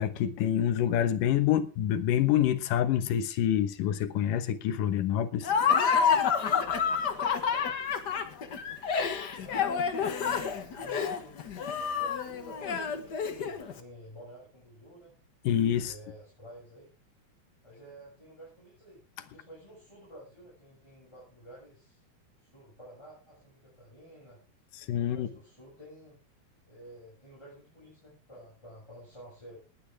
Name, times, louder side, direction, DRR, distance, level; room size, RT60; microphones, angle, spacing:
voice 1, 0.0-5.5 15.4-15.9 24.7-25.3, left 10 dB, 75° left, 2.7 m, -27 dB
Laughter, 5.4-13.7, left 6 dB, 55° left, 1.1 m, -28 dB
voice 2, 9.4-11.4 11.8-15.1 15.8-16.9 17.6-19.0 19.3-22.0 22.5-24.4 25.0-26.2 26.7-29.6, equal, 10° left, 7.3 m, -51 dB
19.0 x 10.5 x 3.6 m
omnidirectional pair, 3.9 m